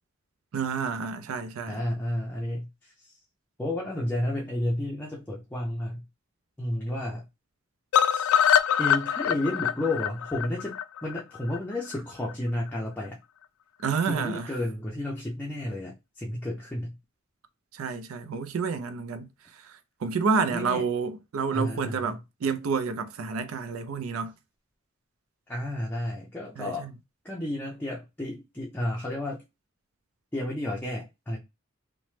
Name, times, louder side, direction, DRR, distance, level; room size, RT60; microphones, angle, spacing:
voice 1, 0.5-1.8 13.8-14.5 17.7-19.3 20.0-24.3 26.6-26.9, right 5 dB, 80° right, 0.4 m, -29 dB
voice 2, 1.7-3.1 3.6-6.0 6.6-7.3 8.1-8.3 8.8-13.2 14.0-17.0 20.5-20.8 21.5-22.2 25.5-26.9 27.2-29.4 30.3-31.4, left 1 dB, 10° left, 0.5 m, -32 dB
sound 1, 7.9-11.9 12.3-12.4 12.7-12.8 13.1-13.2, left 9 dB, 90° left, 0.3 m, -24 dB
2.9 x 2.1 x 3.2 m
head